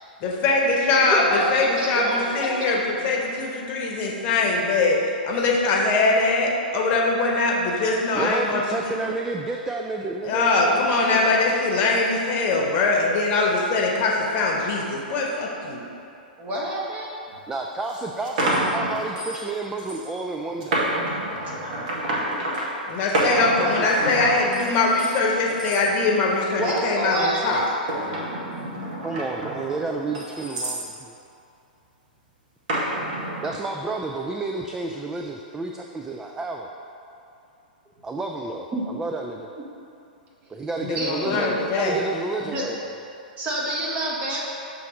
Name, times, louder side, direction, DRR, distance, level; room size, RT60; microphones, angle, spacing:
voice 1, 0.2-5.0 5.2-8.9 10.2-15.8 22.9-27.6 40.8-42.0, left 3 dB, 35° left, -2 dB, 1.0 m, -22 dB
voice 2, 1.0-2.7 16.4-17.2 26.5-27.8 38.7-38.8 40.9-41.6 42.4-42.8 43.4-44.4, right 1 dB, 30° right, -4 dB, 1.3 m, -28 dB
voice 3, 8.1-11.4 17.5-20.9 23.6-23.7 24.0-24.2 29.0-31.1 33.4-36.7 38.0-39.5 40.5-42.9, right 3 dB, 10° right, 2 dB, 0.3 m, -31 dB
sound 1, 17.3-17.4 17.9-19.5 19.8-20.1 20.6-22.7 23.1-25.1 25.5-25.8 26.3-26.7 27.4-30.9 32.7-33.5, right 1 dB, 55° right, 1.3 m, -28 dB
6.8 x 3.2 x 5.0 m, 2.6 s
figure-of-eight pair, 110°, 5 cm